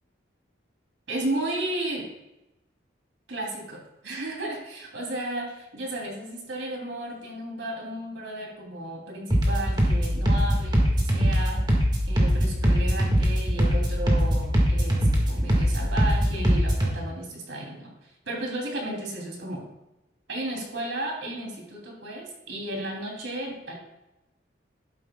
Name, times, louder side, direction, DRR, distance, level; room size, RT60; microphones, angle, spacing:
voice 1, 1.1-2.1 3.3-11.6 12.1-19.6 20.3-23.8, right 1 dB, 75° right, -1 dB, 3.0 m, -34 dB
sound 1, 9.3-16.9, equal, 20° right, 1.8 m, -22 dB
12.0 x 9.9 x 2.3 m, 0.94 s
head